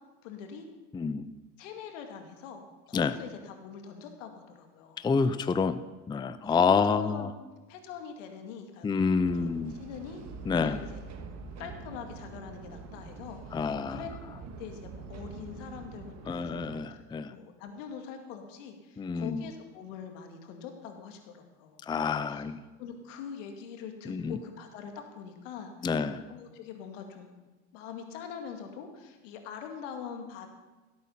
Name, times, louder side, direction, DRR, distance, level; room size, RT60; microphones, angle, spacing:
voice 1, 0.2-0.7 1.6-5.1 6.4-6.5 6.8-7.4 7.7-9.0 9.3-9.5 9.8-10.2 10.6-11.0 11.6-14.1 14.6-17.0 17.3-22.4 22.8-27.4 27.7-30.5, left 7 dB, 80° left, 5 dB, 2.2 m, -43 dB
voice 2, 0.9-1.2 2.9-3.2 5.0-5.8 6.1-7.3 8.8-9.7 10.5-10.8 13.5-14.0 16.3-17.3 19.0-19.4 21.9-22.6 24.1-24.4 25.8-26.2, left 5 dB, 10° left, 13 dB, 0.5 m, -28 dB
sound 1, 9.2-16.8, right 4 dB, 45° right, 1.8 m, -45 dB
16.5 x 8.6 x 5.7 m, 1.2 s
supercardioid pair, 100°, 37 cm